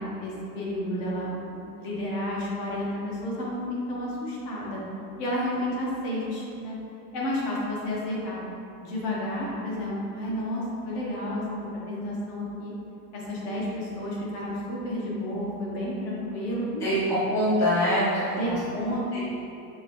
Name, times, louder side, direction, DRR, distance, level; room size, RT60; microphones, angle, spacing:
voice 1, 0.0-3.6 3.9-4.8 5.2-6.8 7.1-8.4 8.8-12.7 13.1-16.9 18.3-19.2, left 1 dB, 50° left, -5 dB, 1.1 m, -31 dB
voice 2, 16.8-18.6 19.1-19.2, equal, 5° left, -10 dB, 0.4 m, -24 dB
5.3 x 2.6 x 3.0 m, 2.7 s
supercardioid pair, 150°, 45 cm